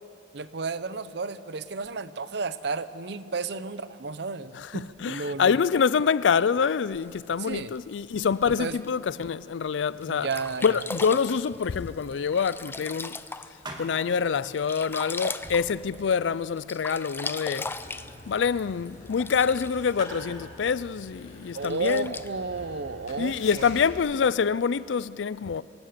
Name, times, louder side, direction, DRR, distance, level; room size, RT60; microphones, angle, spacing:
voice 1, 0.3-5.6 7.4-7.8 8.5-8.8 10.1-10.8 21.5-23.8, right 4 dB, 65° right, 0.7 m, -33 dB
voice 2, 4.5-10.3 10.6-13.2 13.8-17.7 18.3-22.1 23.2-25.6, left 6 dB, 85° left, 0.4 m, -26 dB
Sink (filling or washing), 6.9-8.9 9.5-9.6 10.0-10.1 10.3-13.8 14.2-16.3 16.6-19.9 20.7-20.8 21.5-22.3, left 3 dB, 15° left, 0.5 m, -38 dB
sound 1, 10.7-16.8, right 1 dB, 25° right, 2.0 m, -49 dB
sound 2, 17.6-23.9, left 2 dB, 45° left, 7.1 m, -45 dB
25.0 x 18.5 x 6.7 m
head